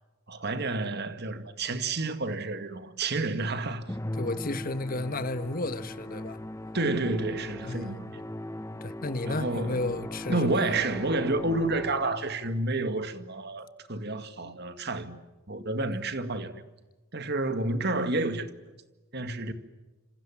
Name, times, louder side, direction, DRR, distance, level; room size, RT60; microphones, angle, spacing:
voice 1, 0.3-4.0 6.7-8.2 9.2-9.9 10.3-15.2 15.5-16.6 17.1-18.5 19.1-19.5, right 2 dB, 50° right, 2.1 m, -30 dB
Musical instrument, 3.9-12.4, left 1 dB, 15° left, 1.0 m, -38 dB
voice 2, 4.2-6.4 7.7-8.0 8.8-10.8 14.4-14.5, left 2 dB, 40° left, 1.4 m, -33 dB
27.5 x 27.0 x 7.4 m
head